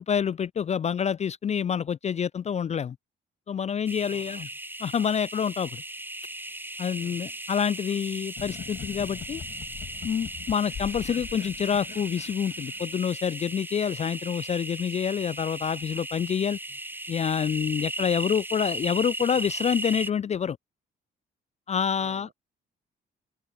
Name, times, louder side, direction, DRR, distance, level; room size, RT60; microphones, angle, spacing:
voice 1, 0.0-3.0 3.5-4.5 4.8-5.8 6.8-9.4 10.0-16.6 17.1-20.6 21.7-22.3, left 7 dB, 35° left, 0.4 m, -27 dB
sound 1, 3.9-20.1, right 1 dB, 10° right, 3.4 m, -36 dB
voice 2, 4.1-4.6 7.0-7.4 14.1-14.2 16.7-16.8 18.0-18.2 22.0-22.4, right 8 dB, 60° right, 5.4 m, -52 dB
sound 2, 8.4-13.1, left 8 dB, 50° left, 2.1 m, -42 dB
open air
cardioid pair, 90°, 20 cm